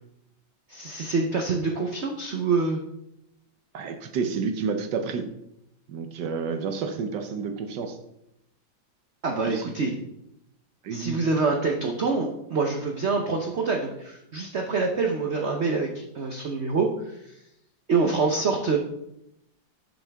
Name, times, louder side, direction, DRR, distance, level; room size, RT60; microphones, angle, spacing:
voice 1, 0.7-2.8 9.2-9.9 10.9-17.3 17.9-18.8, right 4 dB, 50° right, 2 dB, 0.8 m, -26 dB
voice 2, 3.7-5.3 5.9-8.0 9.4-10.0 10.8-11.2 18.0-18.1, right 5 dB, 70° right, 6 dB, 1.4 m, -30 dB
11.5 x 6.4 x 3.5 m, 0.82 s
omnidirectional pair, 2.0 m